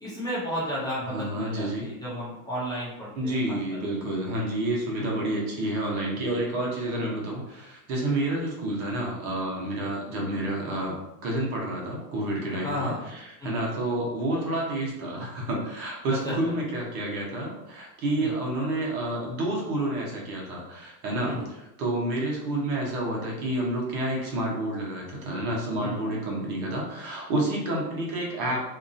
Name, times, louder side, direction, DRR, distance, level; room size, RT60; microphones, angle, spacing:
voice 1, 0.0-3.6 5.0-5.2 12.6-13.0 13.4-13.6 16.2-16.3 18.2-18.3 21.2-21.5 25.8-26.0, equal, 10° left, -9 dB, 0.5 m, -33 dB
voice 2, 1.0-1.9 3.1-10.9 11.2-28.6, right 1 dB, 65° right, -2 dB, 1.1 m, -29 dB
2.8 x 2.4 x 2.6 m, 0.93 s
supercardioid pair, 135°, 47 cm